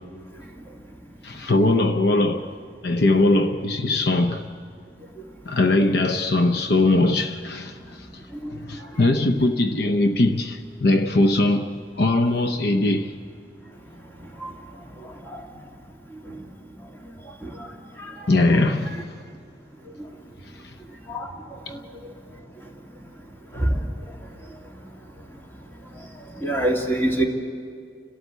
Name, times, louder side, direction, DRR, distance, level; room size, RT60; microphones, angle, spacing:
voice 1, 1.2-2.5 2.8-4.5 5.5-8.1 8.6-13.1 18.3-19.2 21.7-21.8, left 2 dB, 65° left, 0.8 m, -21 dB
voice 2, 26.4-27.2, right 1 dB, 10° left, 2.4 m, -24 dB
30.0 x 12.5 x 8.1 m
head